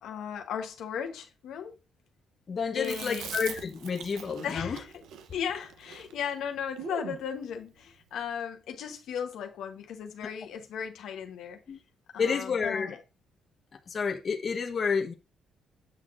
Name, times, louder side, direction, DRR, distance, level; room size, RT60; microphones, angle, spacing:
voice 1, 0.0-1.8 2.7-3.4 4.4-4.9 5.3-11.6 12.1-13.0, left 8 dB, 80° left, 1.1 m, -36 dB
voice 2, 2.5-4.8 11.7-11.8 12.2-12.9 13.9-15.1, left 5 dB, 45° left, 1.0 m, -30 dB
Chewing mastication, 2.8-7.2, right 7 dB, 85° right, 0.8 m, -42 dB
8.2 x 5.8 x 2.5 m
cardioid pair, 90°, 0 cm